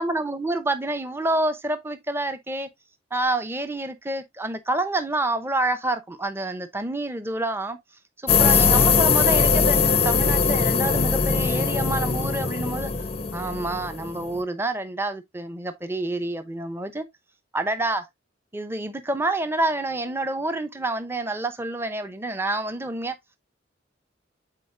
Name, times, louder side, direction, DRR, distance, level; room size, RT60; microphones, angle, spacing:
voice 1, 0.0-2.7 3.1-7.8 8.2-12.9 13.3-17.0 17.5-18.1 18.5-23.2, right 2 dB, 10° right, 0.7 m, -28 dB
sound 1, 8.3-14.4, left 5 dB, 30° left, 0.6 m, -21 dB
8.4 x 4.4 x 2.6 m
head